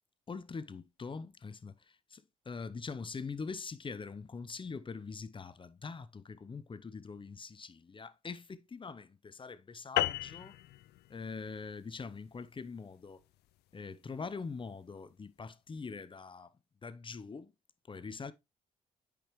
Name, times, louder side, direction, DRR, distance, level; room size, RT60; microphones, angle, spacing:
voice 1, 0.3-10.6 11.1-13.2 13.7-16.5 16.8-17.5 17.9-18.3, left 5 dB, 30° left, 0.7 m, -43 dB
sound 1, 10.0-14.7, left 15 dB, 65° left, 0.4 m, -37 dB
8.7 x 5.1 x 3.1 m
hypercardioid pair, 50°, 18 cm